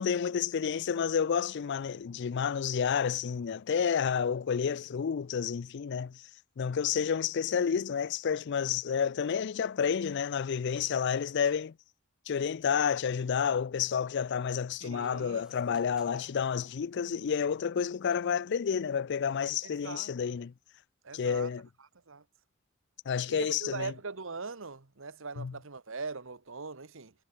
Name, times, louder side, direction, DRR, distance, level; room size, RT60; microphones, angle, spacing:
voice 1, 0.0-6.2 6.6-11.7 12.3-20.5 21.1-21.7 23.1-23.9 25.4-25.5, left 7 dB, 55° left, 0.4 m, -30 dB
sound 1, 10.5-11.7 14.9-17.7 18.0-18.4, right 1 dB, 5° right, 6.1 m, -65 dB
voice 2, 14.8-16.2 19.6-20.1 21.0-21.5 22.1-22.2 23.3-27.1, right 4 dB, 65° right, 1.3 m, -41 dB
head